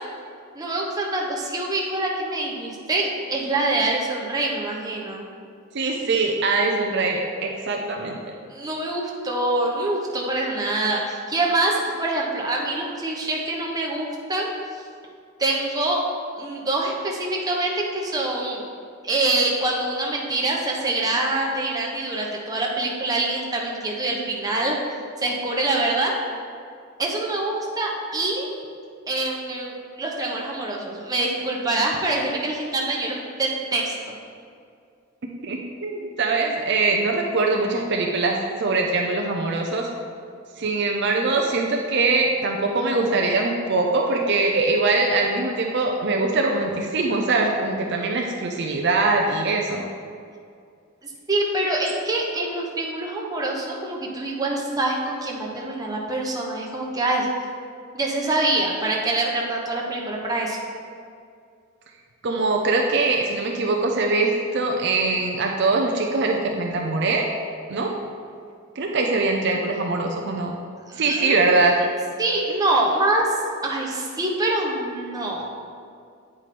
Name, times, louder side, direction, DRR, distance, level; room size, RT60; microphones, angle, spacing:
voice 1, 0.5-5.3 8.5-14.5 15.4-16.0 16.4-18.6 19.0-24.8 25.2-26.1 27.0-28.5 29.1-34.1 51.0-57.3 57.9-60.6 70.9-71.4 72.2-73.3 73.6-75.5, right 2 dB, 20° right, -2 dB, 1.0 m, -25 dB
voice 2, 5.7-8.2 35.4-39.9 40.6-49.9 62.2-67.2 67.7-67.9 68.8-70.5 70.9-71.9, right 3 dB, 55° right, 1 dB, 0.6 m, -22 dB
8.8 x 4.8 x 4.2 m, 2.3 s
head